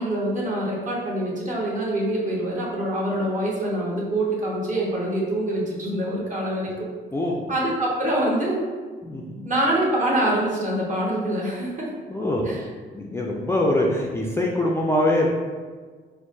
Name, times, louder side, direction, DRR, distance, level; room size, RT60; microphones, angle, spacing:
voice 1, 0.0-6.9 7.5-8.6 9.4-11.9 12.4-12.7, right 1 dB, 40° right, -5 dB, 1.2 m, -25 dB
voice 2, 9.0-9.4 12.1-12.4 12.9-15.3, left 1 dB, 15° left, -3 dB, 0.4 m, -23 dB
4.5 x 2.2 x 2.6 m, 1.5 s
cardioid pair, 90°, 20 cm